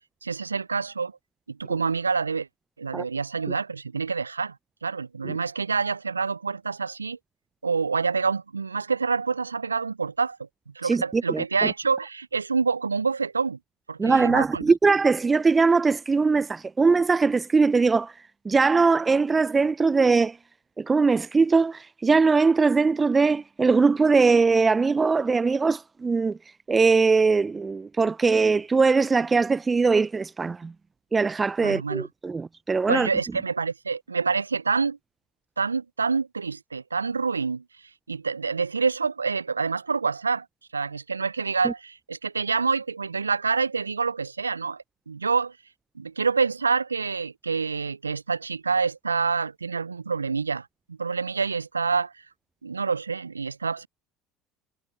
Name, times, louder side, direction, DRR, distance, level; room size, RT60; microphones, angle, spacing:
voice 1, 0.2-1.1 1.5-2.5 2.8-4.6 4.8-7.2 7.6-10.5 10.8-13.6 13.9-14.6 31.6-32.1 32.9-35.0 35.6-37.6 38.1-40.5 40.7-45.5 46.0-52.1 52.6-53.9, right 5 dB, 90° right, 0.3 m, -27 dB
voice 2, 10.8-11.7 14.0-18.2 18.4-20.4 20.8-26.4 26.7-30.7 31.1-33.1 41.6-41.7, right 4 dB, 25° right, 0.6 m, -21 dB
figure-of-eight pair, 65°, 0 cm